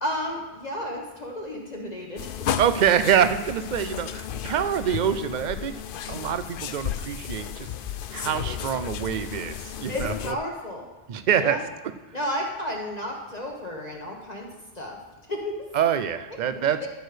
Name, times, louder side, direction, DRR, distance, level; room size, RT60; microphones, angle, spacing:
voice 1, 0.0-2.3 9.9-10.9 11.4-11.6 12.1-14.5 14.7-15.0 15.3-15.7 16.5-16.9, left 1 dB, 40° left, -1 dB, 1.3 m, -32 dB
sound 1, 2.2-10.3, left 9 dB, 65° left, 0.7 m, -33 dB
voice 2, 2.6-5.8 6.1-7.7 8.1-10.3 11.1-11.6 15.7-16.9, right 8 dB, 50° right, 11 dB, 0.7 m, -25 dB
12.5 x 6.4 x 5.0 m, 1.2 s
omnidirectional pair, 1.0 m